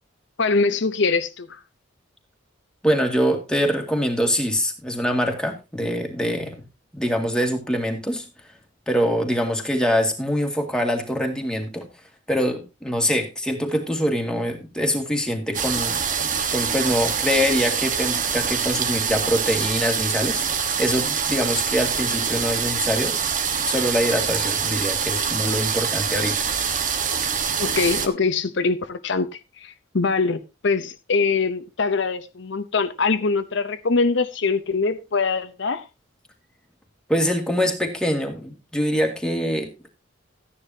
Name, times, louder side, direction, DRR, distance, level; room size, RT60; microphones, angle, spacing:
voice 1, 0.4-1.5 27.6-29.3 29.6-35.9, left 4 dB, 60° left, 0.8 m, -23 dB
voice 2, 2.8-6.6 6.9-8.3 8.9-11.9 12.3-16.0 16.5-23.2 23.7-26.5 37.1-39.9, equal, 5° left, 2.1 m, -24 dB
sound 1, 15.5-28.1, right 7 dB, 40° right, 1.3 m, -25 dB
14.0 x 10.0 x 2.8 m
head